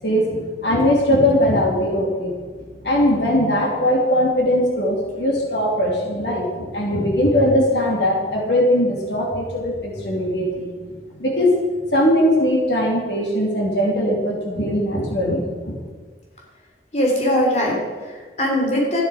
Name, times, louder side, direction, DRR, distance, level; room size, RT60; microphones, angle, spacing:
voice 1, 0.0-2.4 2.8-10.9 11.2-11.6 11.9-15.8, left 1 dB, 80° left, -1 dB, 2.7 m, -20 dB
voice 2, 16.9-19.0, equal, 40° left, -2 dB, 3.1 m, -21 dB
13.0 x 10.5 x 4.9 m, 1.5 s
head